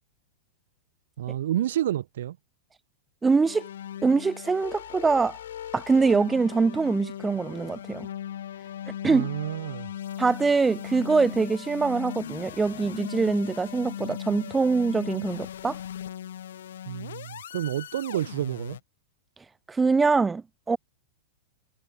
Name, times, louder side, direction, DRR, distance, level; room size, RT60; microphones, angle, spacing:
voice 1, 1.2-2.4 9.1-9.9 16.9-18.8, right 12 dB, 60° right, 0.9 m, -29 dB
voice 2, 3.2-3.7 4.0-5.4 5.7-8.1 9.0-9.3 10.2-15.8 19.7-20.8, right 4 dB, 5° right, 0.3 m, -24 dB
sound 1, 3.4-18.8, left 10 dB, 75° left, 0.6 m, -38 dB
supercardioid pair, 180°, 0 cm